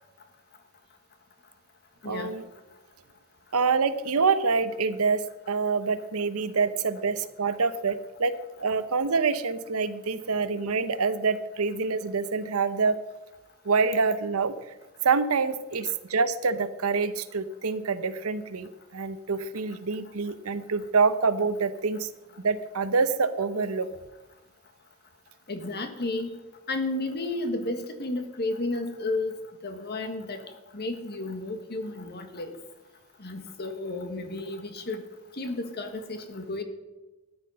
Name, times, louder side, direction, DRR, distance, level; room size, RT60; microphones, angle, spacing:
voice 1, 2.1-2.4 3.5-13.0 13.6-14.5 15.0-22.1 22.4-23.9, right 4 dB, 85° right, 13 dB, 0.9 m, -26 dB
voice 2, 25.5-26.4 26.7-29.3 29.6-30.4 30.7-32.5 33.2-35.0 35.4-36.6, left 2 dB, 50° left, 7 dB, 1.6 m, -32 dB
13.5 x 9.8 x 5.5 m, 1.1 s
head